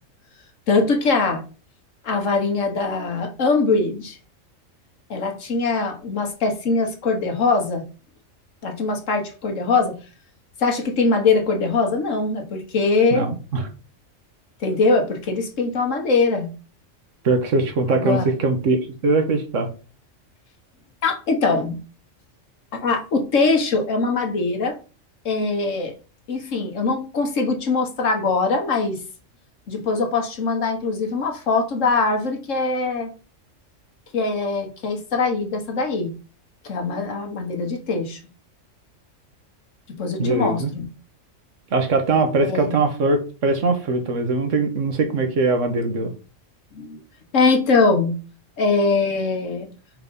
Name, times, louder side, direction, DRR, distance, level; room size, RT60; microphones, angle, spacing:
voice 1, 0.7-1.4 2.0-4.2 5.1-7.8 8.6-10.0 10.6-13.3 14.6-16.5 17.9-18.3 21.0-21.8 22.7-24.8 25.3-25.9 26.3-29.0 29.7-33.1 34.1-36.1 36.6-38.2 39.9-40.9 42.4-42.7 46.7-47.0 47.3-48.2 48.6-49.7, left 3 dB, 75° left, 1.6 m, -22 dB
voice 2, 13.1-13.7 17.2-19.7 40.2-40.7 41.7-46.1, right 3 dB, 75° right, 1.5 m, -21 dB
4.6 x 3.8 x 5.3 m
omnidirectional pair, 1.3 m